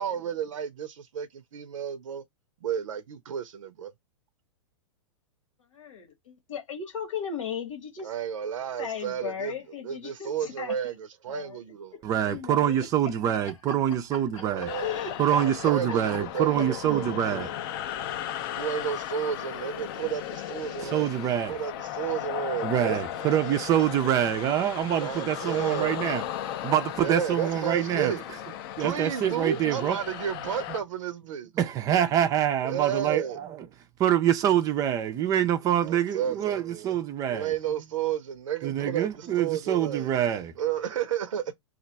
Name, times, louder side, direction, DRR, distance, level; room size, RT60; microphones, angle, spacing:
voice 1, 0.0-2.2 2.6-3.9 8.0-9.5 9.8-11.9 14.4-15.0 15.3-17.5 18.5-21.1 21.5-23.6 25.0-26.0 27.0-28.2 28.8-31.5 32.7-33.4 35.8-36.6 37.3-40.1 40.6-41.5, right 8 dB, 80° right, 0.5 m, -32 dB
voice 2, 6.5-8.1 8.8-10.7 11.3-11.6 11.9-12.9 13.7-13.8 14.1-15.7 16.1-16.2, left 7 dB, 80° left, 1.2 m, -36 dB
voice 3, 12.0-14.7 15.2-17.5 20.8-21.6 22.6-28.2 28.8-30.0 31.6-33.7 34.0-37.5 38.6-40.5, right 10 dB, 20° right, 0.3 m, -25 dB
sound 1, 14.7-30.8, left 11 dB, 45° left, 0.4 m, -36 dB
2.4 x 2.2 x 3.8 m
hypercardioid pair, 135°, 16 cm